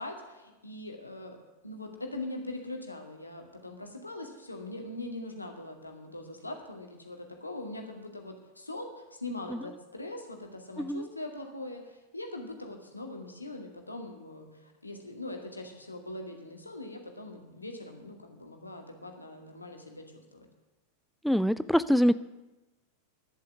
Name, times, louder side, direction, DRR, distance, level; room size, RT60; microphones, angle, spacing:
voice 1, 0.0-1.4 1.6-20.1 20.3-20.4, left 2 dB, 85° left, 3 dB, 2.1 m, -41 dB
voice 2, 21.2-22.1, equal, ahead, 14 dB, 0.4 m, -24 dB
11.0 x 7.6 x 9.7 m, 1.0 s
figure-of-eight pair, 90°, 0 cm